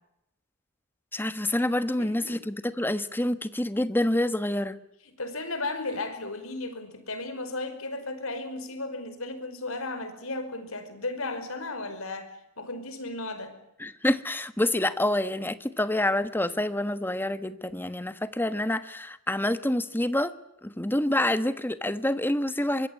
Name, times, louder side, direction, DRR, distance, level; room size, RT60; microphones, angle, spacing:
voice 1, 1.1-4.8 13.8-20.3 20.6-22.9, left 1 dB, 10° left, 12 dB, 1.2 m, -27 dB
voice 2, 2.0-2.4 5.2-13.6, left 2 dB, 65° left, 10 dB, 5.3 m, -35 dB
24.0 x 22.0 x 9.6 m, 0.84 s
head